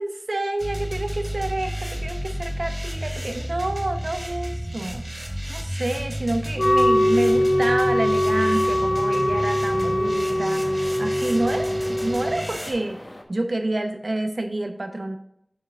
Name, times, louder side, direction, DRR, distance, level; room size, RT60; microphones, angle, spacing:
voice 1, 0.0-13.0 13.3-15.2, right 2 dB, 85° right, 6 dB, 0.8 m, -28 dB
sound 1, 0.6-12.7, equal, 30° right, 2.4 m, -32 dB
Wind instrument woodwind instrument, 6.6-12.4, left 1 dB, 70° left, 0.8 m, -22 dB
sound 2, 7.0-13.2, left 1 dB, 45° left, 1.1 m, -42 dB
7.3 x 5.5 x 3.6 m, 0.71 s
wide cardioid pair, 45°, 0 cm